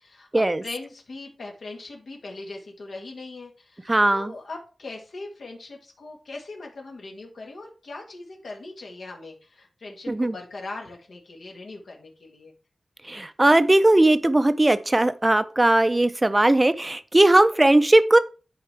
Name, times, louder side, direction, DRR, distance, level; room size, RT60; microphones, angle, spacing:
voice 1, 0.0-12.5, left 3 dB, 70° left, 1.7 m, -40 dB
voice 2, 3.9-4.3 10.1-10.3 13.1-18.2, right 1 dB, 20° right, 0.6 m, -18 dB
10.5 x 4.4 x 3.4 m
wide cardioid pair, 80°, 0 cm